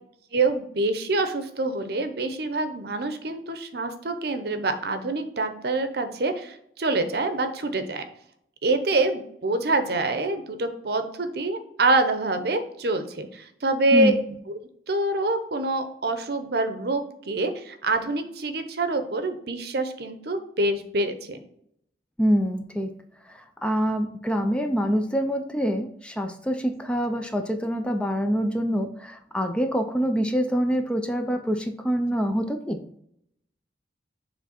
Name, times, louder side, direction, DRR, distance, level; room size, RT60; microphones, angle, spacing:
voice 1, 0.3-8.0 8.6-14.2 14.9-21.4, right 2 dB, 60° right, 8 dB, 0.8 m, -26 dB
voice 2, 22.2-22.9 23.3-32.8, equal, 5° left, 6 dB, 0.5 m, -25 dB
7.1 x 3.4 x 4.2 m, 0.71 s
head